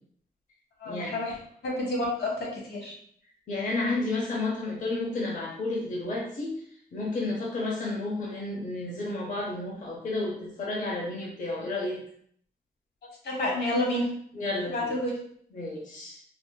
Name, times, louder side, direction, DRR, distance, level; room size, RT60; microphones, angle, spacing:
voice 1, 0.8-1.4 1.6-2.9 13.2-14.1 14.7-15.1, left 1 dB, 90° left, -2 dB, 1.1 m, -29 dB
voice 2, 3.5-6.5 6.9-12.0 14.3-15.0 15.5-16.2, left 2 dB, 50° left, -3 dB, 0.7 m, -31 dB
3.5 x 2.6 x 2.2 m, 0.62 s
wide cardioid pair, 150°, 16 cm